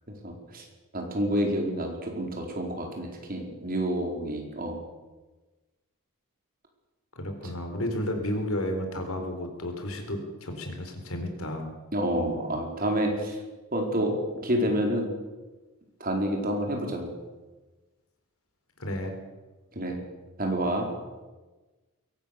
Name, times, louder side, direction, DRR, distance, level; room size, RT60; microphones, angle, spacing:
voice 1, 0.2-0.6 0.9-4.8 7.4-7.5 11.9-13.4 13.7-14.1 14.4-15.1 16.0-17.1 19.7-20.0 20.4-20.9, equal, 40° right, 1 dB, 4.7 m, -28 dB
voice 2, 7.1-11.7 12.2-12.6 18.8-19.2, left 1 dB, 70° left, 5 dB, 4.2 m, -32 dB
22.0 x 18.0 x 6.9 m, 1.2 s
head